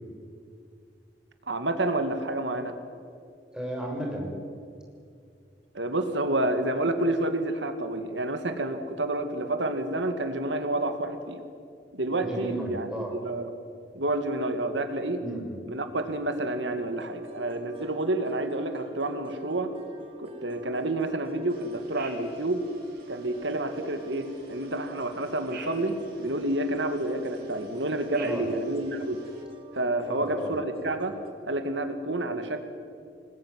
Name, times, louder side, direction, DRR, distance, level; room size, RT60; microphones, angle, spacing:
voice 1, 1.5-2.8 5.7-11.4 11.9-13.6 13.9-15.2 15.7-19.7 20.2-22.6 23.1-29.2 29.7-31.1 31.4-32.6, right 2 dB, 90° right, 7 dB, 2.2 m, -29 dB
voice 2, 3.5-4.3 12.2-13.2 15.2-15.5 28.2-28.5 30.1-30.5, right 1 dB, 5° right, -1 dB, 6.0 m, -34 dB
sound 1, 16.9-31.3, equal, 30° right, 2.8 m, -46 dB
sound 2, 21.5-29.4, right 5 dB, 60° right, 5.5 m, -50 dB
26.5 x 20.5 x 9.7 m, 2.3 s
head